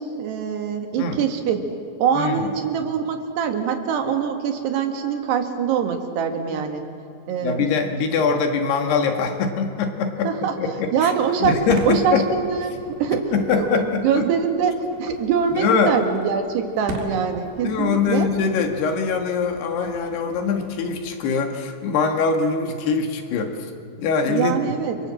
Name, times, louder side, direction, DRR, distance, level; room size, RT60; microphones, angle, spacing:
voice 1, 0.0-1.7 2.0-6.8 7.3-7.6 10.2-10.5 10.9-11.6 11.9-18.3 24.3-25.0, right 7 dB, 85° right, 5 dB, 4.0 m, -23 dB
voice 2, 2.1-2.5 6.4-6.6 7.4-10.3 10.6-11.1 11.4-12.3 13.3-14.3 15.5-16.0 17.6-23.7 24.0-24.6, left 5 dB, 80° left, 4 dB, 3.9 m, -23 dB
Fireworks, 11.3-21.2, right 2 dB, 70° right, 3.7 m, -39 dB
30.0 x 24.0 x 7.7 m, 2.4 s
omnidirectional pair, 4.7 m